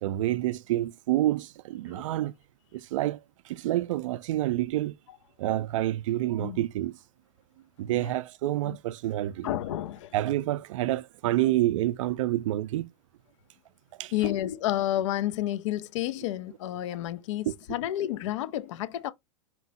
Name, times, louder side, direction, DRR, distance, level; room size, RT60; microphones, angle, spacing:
voice 1, 0.0-2.3 2.7-4.9 5.4-7.0 7.8-9.5 10.1-12.9 14.0-14.1 17.5-17.6, right 14 dB, 70° right, 0.4 m, -28 dB
voice 2, 9.4-10.1 14.1-19.1, left 13 dB, 65° left, 0.5 m, -30 dB
4.4 x 2.0 x 4.0 m
hypercardioid pair, 115°, 17 cm